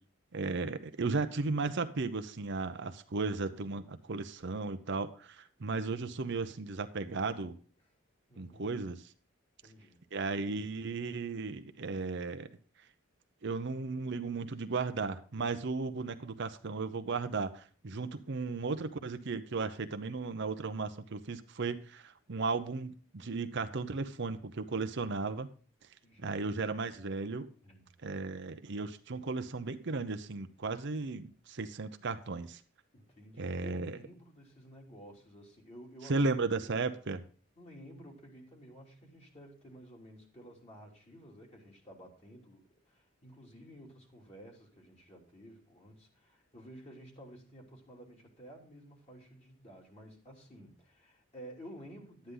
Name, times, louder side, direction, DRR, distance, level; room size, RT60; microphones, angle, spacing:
voice 1, 0.3-7.6 8.4-9.0 10.1-12.5 13.4-25.5 26.2-27.5 28.0-32.6 33.4-34.0 36.1-37.2, right 3 dB, 60° right, 9 dB, 0.7 m, -35 dB
voice 2, 8.3-8.8 9.6-10.0 26.0-26.4 27.6-28.3 32.9-36.2 36.6-36.7 37.6-52.3, equal, 30° left, -1 dB, 3.0 m, -53 dB
11.5 x 9.5 x 3.8 m, 0.40 s
head